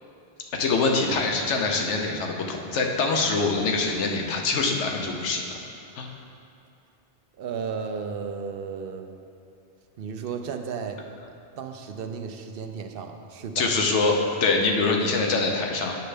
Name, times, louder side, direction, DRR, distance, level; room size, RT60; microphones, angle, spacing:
voice 1, 0.5-5.6 6.0-6.1 13.6-16.0, left 3 dB, 80° left, 1 dB, 1.1 m, -24 dB
voice 2, 7.4-9.2 10.0-11.0 11.6-13.7, right 6 dB, 65° right, 6 dB, 0.7 m, -34 dB
9.4 x 6.5 x 3.3 m, 2.6 s
omnidirectional pair, 1.2 m